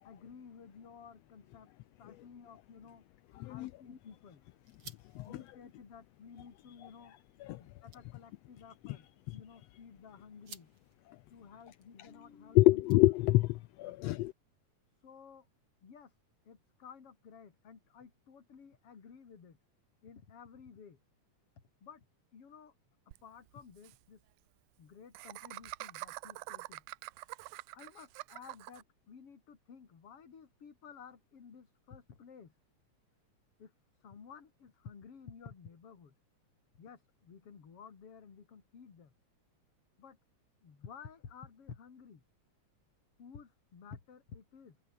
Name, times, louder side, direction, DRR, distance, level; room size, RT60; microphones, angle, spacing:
voice 1, 0.0-1.7 2.0-3.0 3.4-4.4 5.2-7.1 7.6-10.7 11.3-12.8 13.9-14.2 15.0-15.5 15.8-16.2 16.5-19.6 20.0-21.0 21.8-22.1 22.3-22.7 23.2-24.2 24.8-26.8 27.2-27.3 27.7-32.5 33.6-33.7 34.0-36.1 36.7-39.1 40.0-40.2 40.6-42.2 43.2-44.8, left 6 dB, 50° left, 3.7 m, -53 dB
sound 1, 3.2-13.5, right 4 dB, 45° right, 4.7 m, -61 dB
voice 2, 3.4-3.7 5.1-5.4 7.4-7.6 12.5-14.3, left 18 dB, 80° left, 1.4 m, -26 dB
Laughter, 23.1-23.2 23.5-23.6 23.8-24.0 25.1-28.8, right 20 dB, 85° right, 2.0 m, -45 dB
omnidirectional pair, 3.4 m